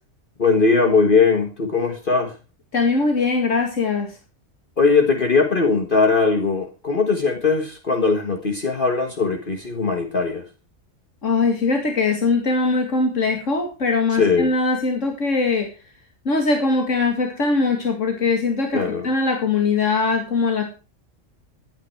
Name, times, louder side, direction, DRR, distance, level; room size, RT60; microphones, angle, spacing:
voice 1, 0.4-2.3 4.8-10.4 14.1-14.5 18.7-19.1, left 4 dB, 45° left, 4 dB, 1.7 m, -19 dB
voice 2, 2.7-4.1 11.2-15.7 16.3-20.6, left 3 dB, 85° left, 3 dB, 2.5 m, -21 dB
15.5 x 9.9 x 4.6 m, 0.33 s
omnidirectional pair, 1.3 m